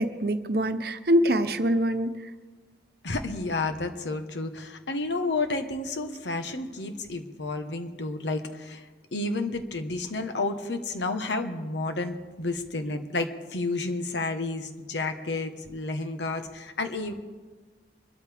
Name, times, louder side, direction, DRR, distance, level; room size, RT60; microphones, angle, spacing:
voice 1, 0.0-2.1, equal, 60° right, 9 dB, 0.9 m, -24 dB
voice 2, 3.0-17.1, left 2 dB, 85° left, 6 dB, 1.3 m, -31 dB
24.0 x 13.0 x 3.5 m, 1.3 s
head